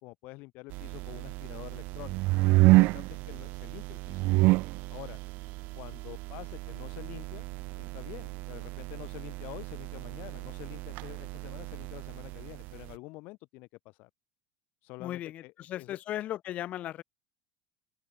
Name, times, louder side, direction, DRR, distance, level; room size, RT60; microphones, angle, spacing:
voice 1, 0.0-2.2 2.6-4.2 4.9-5.2 5.7-7.5 7.7-14.1 14.8-16.0, left 23 dB, 60° left, 1.0 m, -47 dB
sound 1, 0.7-12.9, right 22 dB, 60° right, 0.5 m, -29 dB
voice 2, 15.0-17.0, left 13 dB, 45° left, 1.6 m, -36 dB
open air
supercardioid pair, 125°, 3 cm